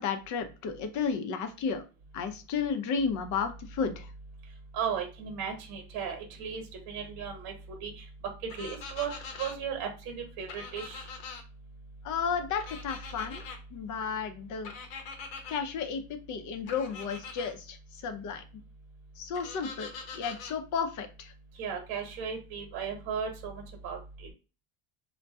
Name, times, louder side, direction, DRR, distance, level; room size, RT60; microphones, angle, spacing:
voice 1, 0.0-1.8 2.1-4.1 12.0-13.4 13.7-14.7 15.5-16.0 16.3-17.8 18.0-18.4 19.2-21.3, left 6 dB, 45° left, 7 dB, 0.5 m, -33 dB
voice 2, 4.7-7.5 7.8-8.0 8.6-9.1 9.4-11.0 21.6-24.0, right 7 dB, 60° right, 3 dB, 1.0 m, -35 dB
sound 1, 8.5-9.5 10.5-11.4 12.6-13.6 14.6-15.6 16.7-17.5 19.3-20.5, left 5 dB, 75° left, 0.8 m, -43 dB
2.6 x 2.2 x 2.3 m, 0.32 s
supercardioid pair, 100°, 42 cm